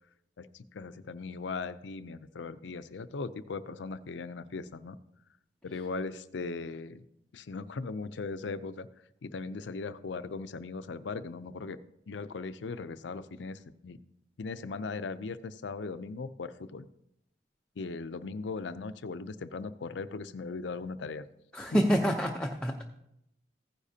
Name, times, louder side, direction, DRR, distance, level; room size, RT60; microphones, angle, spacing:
voice 1, 0.4-5.0 5.6-7.0 7.3-8.9 9.2-11.8 12.1-14.0 14.4-16.9 17.8-21.2 21.7-21.8, left 4 dB, 80° left, 13 dB, 0.5 m, -38 dB
voice 2, 21.5-22.8, equal, 5° left, 0 dB, 0.7 m, -27 dB
15.5 x 9.9 x 2.8 m, 0.78 s
head